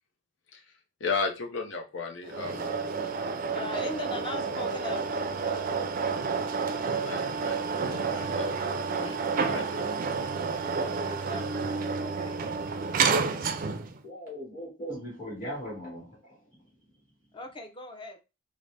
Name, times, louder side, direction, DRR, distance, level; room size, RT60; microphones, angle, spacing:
voice 1, 1.0-2.7 7.0-7.6 8.1-8.6 8.9-9.9, left 4 dB, 70° left, 0.6 m, -35 dB
sound 1, 2.3-14.0, right 5 dB, 45° right, 0.4 m, -30 dB
voice 2, 3.5-5.8 6.2-7.1 7.9-8.6 11.0-12.4 17.3-18.2, left 1 dB, 25° left, 0.6 m, -41 dB
voice 3, 14.0-16.4, equal, 45° left, 1.9 m, -39 dB
4.0 x 2.0 x 3.3 m
head